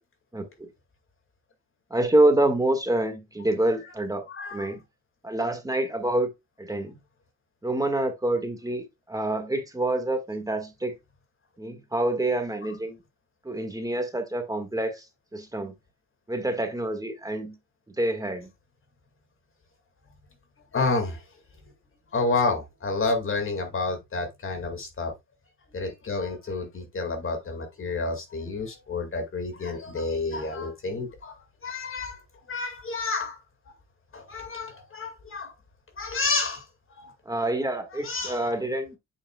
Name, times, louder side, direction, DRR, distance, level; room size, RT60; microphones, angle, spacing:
voice 1, 0.3-0.7 1.9-4.2 4.5-4.8 5.2-6.3 6.6-7.0 7.6-10.9 11.6-13.0 13.4-15.1 15.3-15.7 16.3-17.6 18.0-18.5 37.3-39.0, right 1 dB, 10° right, 1.8 m, -27 dB
voice 2, 4.3-4.8 20.7-21.2 22.1-25.1 25.7-33.7 34.1-35.5 36.0-37.1 37.9-38.6, left 3 dB, 45° left, 2.2 m, -30 dB
8.0 x 6.9 x 2.3 m
cardioid pair, 90°, 30 cm